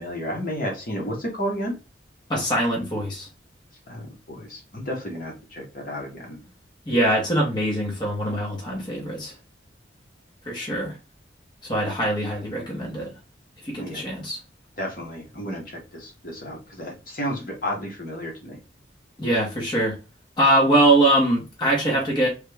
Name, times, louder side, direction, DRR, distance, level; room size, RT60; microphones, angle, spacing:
voice 1, 0.0-1.7 3.9-6.5 13.8-14.0 14.8-18.6, equal, 50° left, 1.1 m, -32 dB
voice 2, 2.3-3.3 6.9-9.3 10.4-11.0 11.6-13.1 13.6-14.4 19.2-20.0 20.4-22.3, right 1 dB, 25° left, 1.0 m, -22 dB
3.3 x 2.3 x 3.3 m
head